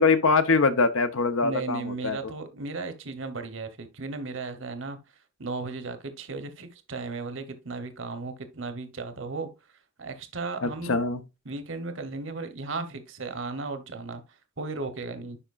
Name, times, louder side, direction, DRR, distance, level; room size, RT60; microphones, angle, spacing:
voice 1, 0.0-2.2 10.6-11.2, left 4 dB, 80° left, 0.9 m, -23 dB
voice 2, 1.4-5.0 5.4-9.5 10.0-11.0 11.4-14.2 14.6-15.4, right 3 dB, 65° right, 1.0 m, -35 dB
10.0 x 5.0 x 2.5 m
head